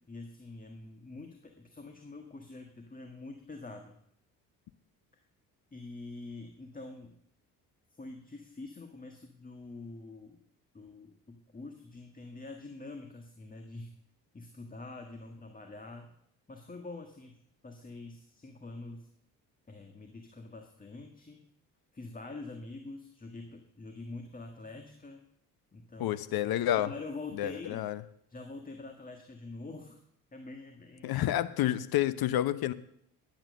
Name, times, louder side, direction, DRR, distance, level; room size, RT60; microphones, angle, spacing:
voice 1, 0.0-4.0 5.7-7.1 8.0-10.4 10.7-13.9 14.3-16.1 16.5-19.1 19.7-21.5 21.9-25.2 25.7-27.8 28.3-30.0 30.3-31.2, left 3 dB, 20° left, 4 dB, 1.7 m, -45 dB
voice 2, 26.0-26.9 27.4-28.0 31.0-32.7, left 13 dB, 60° left, 15 dB, 0.9 m, -29 dB
11.0 x 8.9 x 6.5 m, 0.71 s
hypercardioid pair, 55°, 42 cm